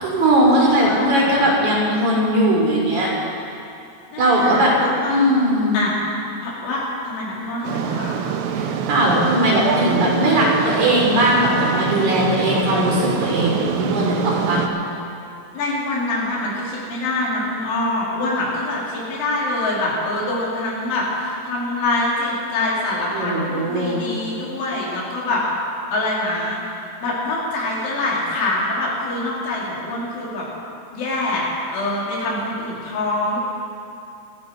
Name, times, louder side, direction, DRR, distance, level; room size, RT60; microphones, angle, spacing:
voice 1, 0.0-3.1 4.2-4.7 5.1-5.8 8.5-14.6 23.1-24.0, right 1 dB, 40° right, -3 dB, 4.1 m, -19 dB
voice 2, 0.8-1.4 4.1-5.3 5.7-6.0 6.4-8.2 15.5-25.4 25.9-26.6 27.0-30.5 30.9-33.4, left 2 dB, 75° left, -5 dB, 5.5 m, -25 dB
sound 1, 7.6-14.7, right 7 dB, 75° right, 2.7 m, -25 dB
26.5 x 10.5 x 4.5 m, 2.7 s
omnidirectional pair, 5.6 m